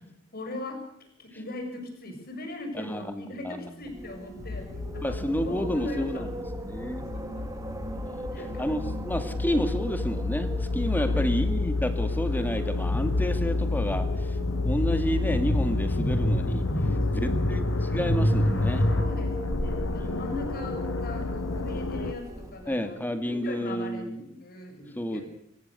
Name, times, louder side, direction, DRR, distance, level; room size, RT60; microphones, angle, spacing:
voice 1, 0.3-4.7 4.9-6.3 7.0-7.2 8.3-8.7 10.9-11.3 15.1-15.2 16.8-17.4 18.8-23.0 23.2-25.2, left 2 dB, 45° left, 3 dB, 7.0 m, -40 dB
voice 2, 2.7-3.9 5.0-7.1 7.9-8.3 8.6-14.4 14.6-16.7 17.1-18.9 22.7-24.2 25.0-25.2, equal, 10° left, 9 dB, 2.0 m, -30 dB
Wind, 3.8-22.8, equal, 15° right, 2.4 m, -39 dB
sound 1, 4.4-22.1, left 3 dB, 85° left, 0.8 m, -30 dB
sound 2, 12.9-19.0, equal, 65° left, 5.7 m, -28 dB
24.0 x 18.0 x 6.8 m, 0.74 s
head